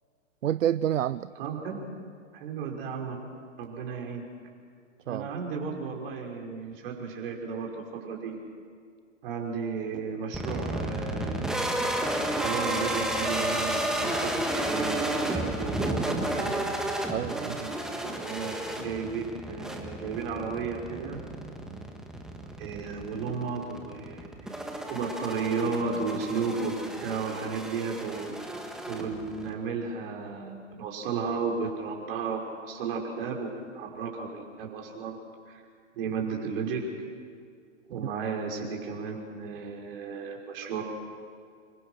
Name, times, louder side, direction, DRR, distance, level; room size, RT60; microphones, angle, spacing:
voice 1, 0.4-1.3 5.1-5.3 16.4-16.5 17.1-17.6 21.7-21.9 38.0-38.1, right 10 dB, 70° right, 17 dB, 0.6 m, -29 dB
voice 2, 1.4-1.8 2.3-3.2 3.6-4.2 5.1-8.4 9.2-11.6 12.3-16.7 17.6-21.2 22.3-24.5 24.9-28.6 28.9-32.4 32.7-35.1 35.5-35.6 35.9-36.8 37.9-40.8, right 5 dB, 45° right, 1 dB, 5.6 m, -34 dB
sound 1, 10.3-29.5, right 1 dB, ahead, 1.8 m, -32 dB
27.0 x 23.5 x 6.5 m, 2.2 s
hypercardioid pair, 125°, 39 cm